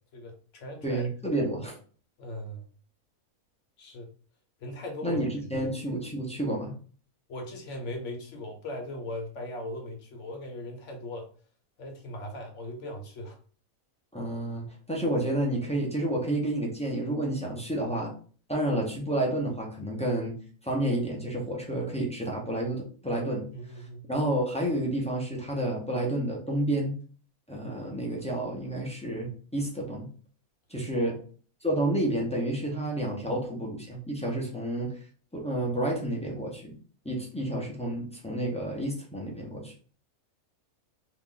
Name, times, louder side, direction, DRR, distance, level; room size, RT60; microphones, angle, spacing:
voice 1, 0.1-1.0 2.2-2.6 3.8-4.1 4.6-5.2 5.6-5.7 7.3-11.3 11.8-13.4 17.5-17.6 23.5-24.0 31.0-31.2, left 1 dB, 60° left, 2 dB, 1.1 m, -39 dB
voice 2, 0.8-1.7 5.0-6.7 14.1-18.1 18.5-20.4 20.6-27.0 27.5-30.1 30.7-31.2 31.6-35.0 35.3-36.8 37.0-39.7, right 1 dB, 10° left, -2 dB, 0.4 m, -30 dB
2.9 x 2.5 x 3.7 m, 0.41 s
omnidirectional pair, 1.5 m